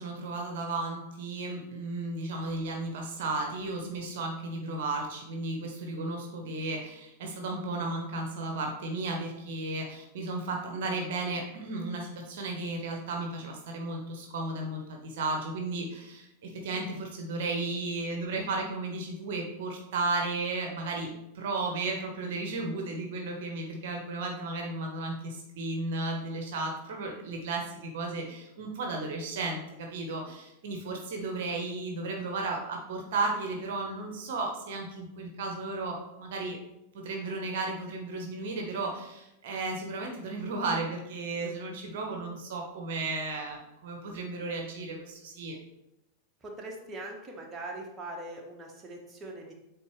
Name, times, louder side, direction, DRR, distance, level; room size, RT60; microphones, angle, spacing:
voice 1, 0.0-21.1 21.3-36.6 36.9-45.6, right 3 dB, 55° right, 1 dB, 0.9 m, -34 dB
voice 2, 46.4-49.5, right 2 dB, 20° right, -1 dB, 1.2 m, -41 dB
8.4 x 3.6 x 3.2 m, 0.90 s
figure-of-eight pair, 90°, 0 cm